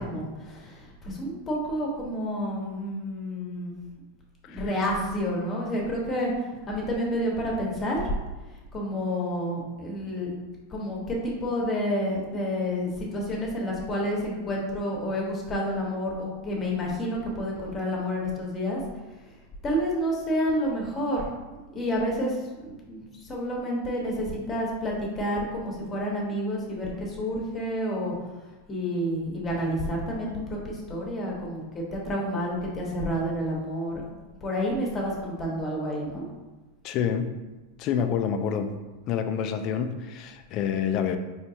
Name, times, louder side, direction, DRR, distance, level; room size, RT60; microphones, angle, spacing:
voice 1, 0.0-3.8 4.4-6.3 6.7-8.0 8.7-10.3 10.7-18.8 19.6-21.2 21.7-28.1 28.7-34.0 34.4-36.2, equal, 25° left, -2 dB, 1.2 m, -29 dB
voice 2, 36.8-37.3 37.8-38.7 39.1-41.2, left 8 dB, 45° left, 7 dB, 0.4 m, -27 dB
4.5 x 3.2 x 2.8 m, 1.2 s
supercardioid pair, 125°, 0 cm